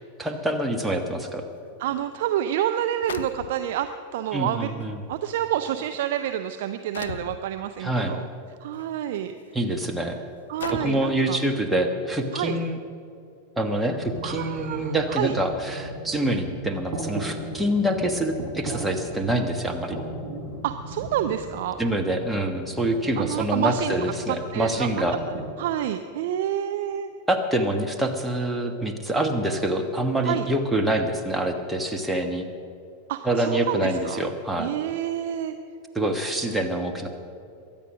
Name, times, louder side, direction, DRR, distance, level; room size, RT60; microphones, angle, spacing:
voice 1, 0.2-1.4 4.3-5.0 7.8-8.1 9.5-10.2 10.7-12.8 13.6-20.0 21.8-25.2 27.3-32.5 33.2-34.7 35.9-37.1, right 1 dB, 5° right, 4 dB, 1.5 m, -26 dB
voice 2, 1.8-4.7 5.1-8.3 8.6-9.3 10.5-11.4 12.3-12.6 14.2-15.4 20.6-21.8 23.2-24.0 24.3-25.0 25.6-27.1 30.2-30.5 33.1-34.2 34.6-35.5, right 11 dB, 55° right, 8 dB, 0.6 m, -28 dB
sound 1, 2.0-2.1 3.1-3.9 4.8-4.9 5.7-5.9 6.9-7.4 8.7-8.9 9.5-9.6 10.6-11.1, left 7 dB, 65° left, 0.5 m, -36 dB
sound 2, 14.0-25.4, right 2 dB, 35° right, 4.2 m, -37 dB
22.5 x 9.2 x 6.2 m, 2.5 s
figure-of-eight pair, 90°, 0 cm